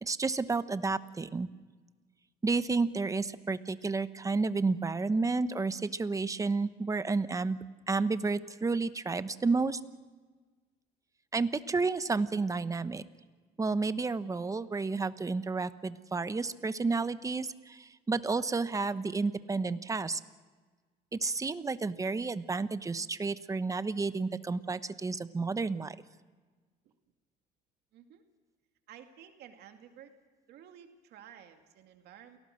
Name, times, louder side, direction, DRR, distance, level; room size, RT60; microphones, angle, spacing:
voice 1, 0.0-1.5 2.4-7.6 7.9-9.8 11.3-13.0 13.6-20.2 21.1-25.9, right 4 dB, 20° right, 13 dB, 1.0 m, -31 dB
voice 2, 27.9-28.2 28.9-30.1 30.5-32.4, right 9 dB, 75° right, 5 dB, 2.3 m, -53 dB
28.5 x 18.0 x 6.5 m, 1.4 s
cardioid pair, 110°, 17 cm